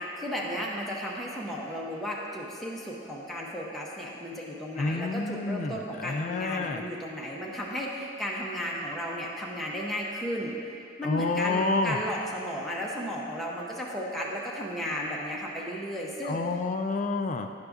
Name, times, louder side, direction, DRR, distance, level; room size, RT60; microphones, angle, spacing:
voice 1, 0.0-10.5 11.0-16.4, equal, ahead, -5 dB, 0.6 m, -34 dB
voice 2, 4.8-6.8 11.0-12.0 16.2-17.5, left 3 dB, 40° left, 6 dB, 0.3 m, -29 dB
9.9 x 6.5 x 2.4 m, 2.7 s
head